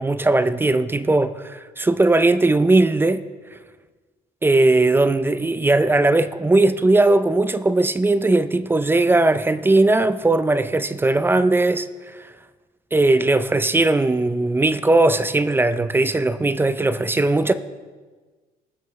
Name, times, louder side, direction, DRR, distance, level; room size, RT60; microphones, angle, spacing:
voice 1, 0.0-3.2 3.5-3.6 4.4-12.3 12.9-17.5, right 2 dB, 15° right, 0.4 m, -18 dB
18.5 x 6.9 x 3.2 m
cardioid pair, 110°, 17 cm